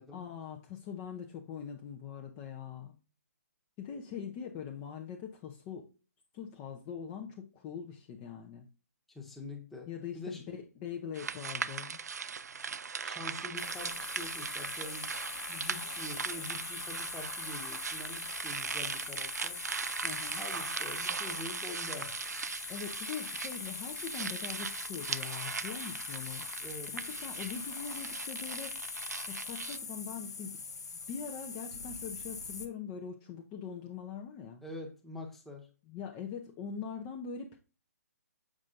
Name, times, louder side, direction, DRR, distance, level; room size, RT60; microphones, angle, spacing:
voice 1, 0.1-3.0 3.8-5.9 6.3-8.7 9.9-12.0 20.0-20.4 22.7-26.5 26.9-28.8 29.3-30.6 31.1-34.6 35.9-37.6, left 7 dB, 25° left, 0.7 m, -42 dB
voice 2, 9.1-9.9 10.1-10.6 13.0-15.1 15.5-19.7 20.4-22.2 26.6-27.0 34.6-35.7, left 2 dB, 5° left, 1.1 m, -45 dB
sound 1, 11.1-29.8, right 6 dB, 75° right, 0.4 m, -39 dB
sound 2, 13.6-32.7, left 5 dB, 75° left, 0.9 m, -42 dB
7.4 x 5.2 x 2.5 m
figure-of-eight pair, 140°, 9 cm